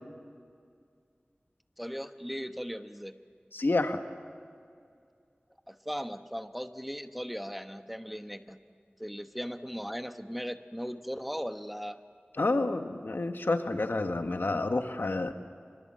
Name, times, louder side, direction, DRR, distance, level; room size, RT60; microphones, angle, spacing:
voice 1, 1.8-3.2 5.7-8.6 9.0-12.0, equal, ahead, 8 dB, 1.1 m, -38 dB
voice 2, 3.5-4.0 12.4-15.3, left 2 dB, 80° left, 7 dB, 1.4 m, -29 dB
26.0 x 25.0 x 7.6 m, 2.3 s
wide cardioid pair, 50°, 4 cm